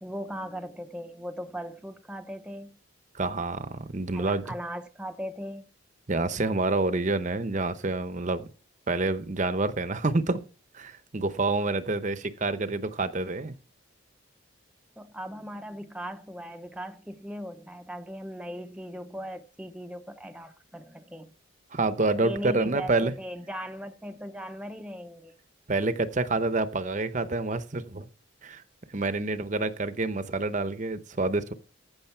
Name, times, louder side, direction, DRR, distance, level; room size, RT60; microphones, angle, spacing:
voice 1, 0.0-2.8 4.1-5.7 15.0-21.3 22.2-25.3, equal, 5° right, 0.6 m, -38 dB
voice 2, 3.1-4.5 6.1-8.5 8.9-10.4 10.7-13.5 21.7-23.1 25.7-28.1 28.4-28.6 28.9-31.5, right 2 dB, 35° right, 0.8 m, -28 dB
14.5 x 6.4 x 4.5 m
head